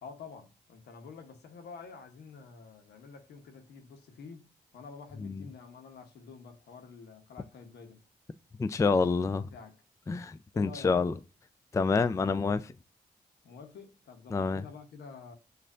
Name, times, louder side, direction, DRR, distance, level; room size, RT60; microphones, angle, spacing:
voice 1, 0.0-4.5 4.7-8.0 8.7-9.0 9.3-9.8 10.5-10.9 13.4-15.3, left 5 dB, 80° left, 0.9 m, -48 dB
voice 2, 8.6-9.5 10.1-11.1 11.7-12.7 14.3-14.6, left 4 dB, 20° left, 0.3 m, -27 dB
6.5 x 2.5 x 2.5 m
supercardioid pair, 50°, 17 cm